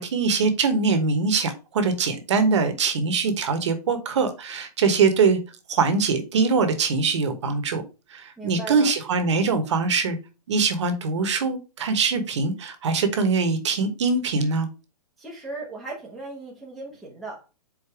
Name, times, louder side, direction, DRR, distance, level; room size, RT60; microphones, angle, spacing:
voice 1, 0.0-5.4 5.7-7.8 8.1-10.2 10.5-14.7, right 4 dB, 45° right, 1.1 m, -23 dB
voice 2, 8.4-8.9 15.2-17.4, right 3 dB, ahead, 0.8 m, -37 dB
5.0 x 4.0 x 4.8 m
hypercardioid pair, 175°, 21 cm